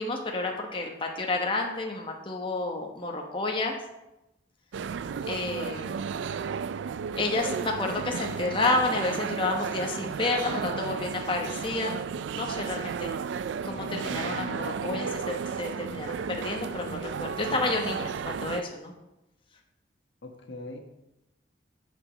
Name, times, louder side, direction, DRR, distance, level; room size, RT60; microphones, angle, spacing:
voice 1, 0.0-3.8 5.3-6.0 7.2-12.0 12.3-13.1 13.6-18.9, left 2 dB, 25° left, 1 dB, 1.0 m, -30 dB
sound 1, 4.7-18.6, right 6 dB, 75° right, 0.3 m, -33 dB
voice 2, 13.8-14.6 20.2-20.8, left 2 dB, 75° left, 4 dB, 1.3 m, -42 dB
9.4 x 4.9 x 6.6 m, 0.95 s
head